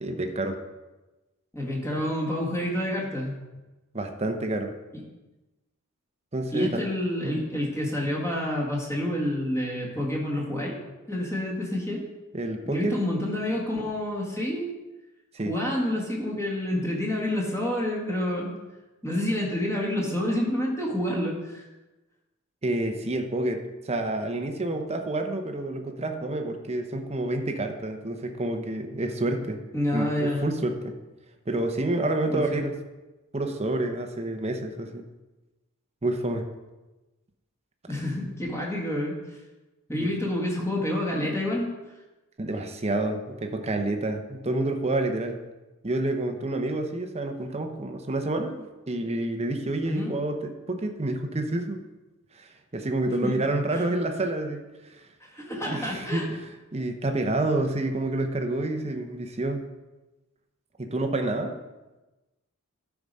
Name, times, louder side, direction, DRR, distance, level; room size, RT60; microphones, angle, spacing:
voice 1, 0.0-0.6 3.9-4.7 6.3-6.8 7.2-7.4 12.3-13.0 15.3-15.6 22.6-29.6 29.9-30.9 31.5-32.7 33.3-35.0 36.0-36.4 39.9-40.1 42.4-45.4 45.8-51.8 52.3-55.0 55.6-59.6 60.8-61.6, right 2 dB, 30° right, 4 dB, 0.8 m, -28 dB
voice 2, 1.5-3.3 6.5-10.8 11.1-12.1 12.6-14.7 15.4-18.5 19.0-21.7 29.7-30.5 32.3-32.6 37.9-39.2 39.9-41.7 49.8-50.1 53.2-53.4 53.7-53.8 55.2-56.3, left 1 dB, 10° left, -3 dB, 1.7 m, -28 dB
12.0 x 4.9 x 5.4 m, 1.1 s
head